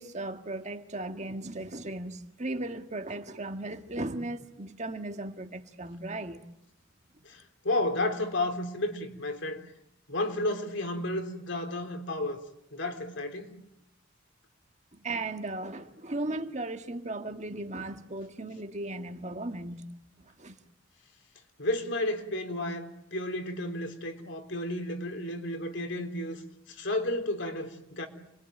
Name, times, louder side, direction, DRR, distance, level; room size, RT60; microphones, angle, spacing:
voice 1, 0.0-6.4 14.9-19.9 20.4-20.5, right 2 dB, 35° right, 1.7 m, -36 dB
voice 2, 7.2-9.6 10.1-12.4 12.7-13.5 21.6-26.4 26.7-28.1, left 1 dB, 65° left, 3.6 m, -32 dB
29.5 x 22.0 x 9.1 m
head